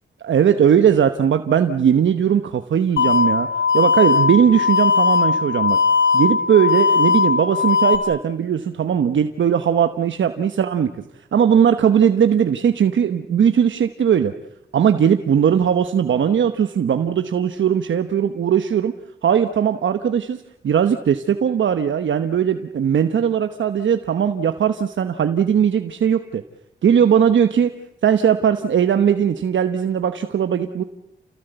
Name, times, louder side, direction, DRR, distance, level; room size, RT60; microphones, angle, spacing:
voice 1, 0.2-3.5 3.7-5.8 6.1-10.9 11.3-14.3 14.7-18.9 19.2-26.4 26.8-27.7 28.0-30.8, right 8 dB, 75° right, 8 dB, 1.1 m, -18 dB
sound 1, 3.0-8.0, left 5 dB, 75° left, 2.7 m, -18 dB
29.5 x 17.5 x 8.0 m, 0.86 s
cardioid pair, 70°, 20 cm